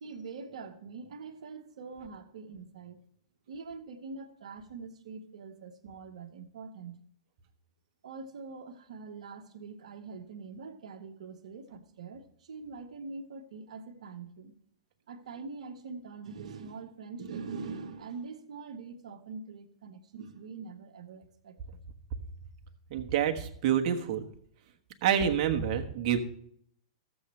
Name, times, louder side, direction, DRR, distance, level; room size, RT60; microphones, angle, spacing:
voice 1, 0.0-3.0 3.5-7.0 8.0-14.5 15.1-21.8, right 4 dB, 70° right, 6 dB, 1.2 m, -44 dB
voice 2, 22.9-24.2 25.0-26.2, right 9 dB, 45° right, 4 dB, 1.3 m, -27 dB
15.0 x 7.2 x 3.2 m, 0.66 s
hypercardioid pair, 115°, 4 cm